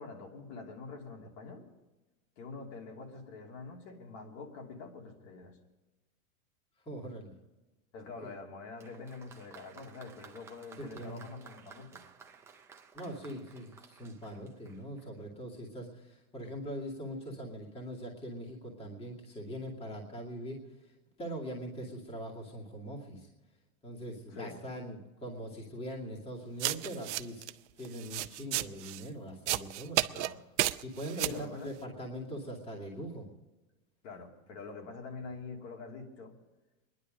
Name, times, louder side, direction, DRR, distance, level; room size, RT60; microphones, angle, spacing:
voice 1, 0.0-1.7 2.4-5.6 7.9-12.0 24.3-24.6 30.1-30.4 31.1-31.7 34.0-36.3, left 4 dB, 60° left, 0 dB, 3.0 m, -45 dB
voice 2, 6.9-7.3 8.2-8.3 10.8-11.2 12.9-20.6 21.2-23.3 23.8-27.5 27.8-30.0 30.8-33.3, equal, 15° left, -2 dB, 2.4 m, -42 dB
Applause, 8.8-15.2 16.1-16.2, right 6 dB, 5° right, 0.4 m, -55 dB
sound 1, 26.6-27.5 27.8-29.0 29.5-30.3 30.6-31.4, right 16 dB, 55° right, 0.7 m, -32 dB
23.5 x 11.0 x 5.2 m, 1.1 s
supercardioid pair, 155°, 42 cm